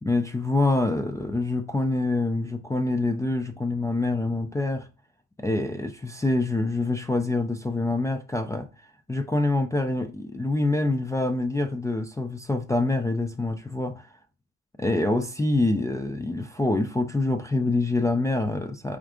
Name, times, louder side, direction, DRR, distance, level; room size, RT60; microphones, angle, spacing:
voice 1, 0.0-4.9 5.4-8.7 9.1-14.1 14.8-19.0, left 2 dB, 10° left, 0.3 m, -26 dB
4.3 x 2.4 x 3.6 m
cardioid pair, 90°, 30 cm